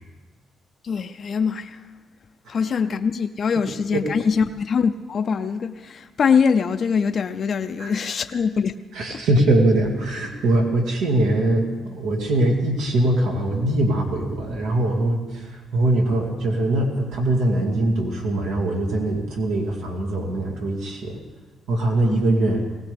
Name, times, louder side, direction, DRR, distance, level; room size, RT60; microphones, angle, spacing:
voice 1, 0.8-1.9 2.5-8.8 9.1-9.2 22.1-22.2, left 6 dB, 50° left, 0.5 m, -23 dB
voice 2, 8.9-21.2 21.7-22.6, right 1 dB, 90° right, 2.4 m, -22 dB
19.5 x 17.5 x 3.5 m
cardioid pair, 90°, 0 cm